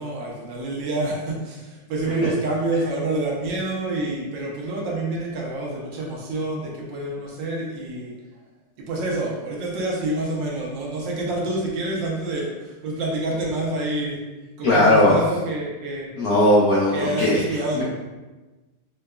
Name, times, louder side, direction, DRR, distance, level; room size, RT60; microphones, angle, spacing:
voice 1, 0.0-8.1 8.8-14.2 14.6-16.1 16.9-17.8, right 2 dB, 75° right, -2 dB, 1.3 m, -27 dB
voice 2, 14.6-15.1 16.2-17.8, left 1 dB, 75° left, -7 dB, 0.8 m, -18 dB
4.8 x 2.2 x 2.2 m, 1.2 s
omnidirectional pair, 2.2 m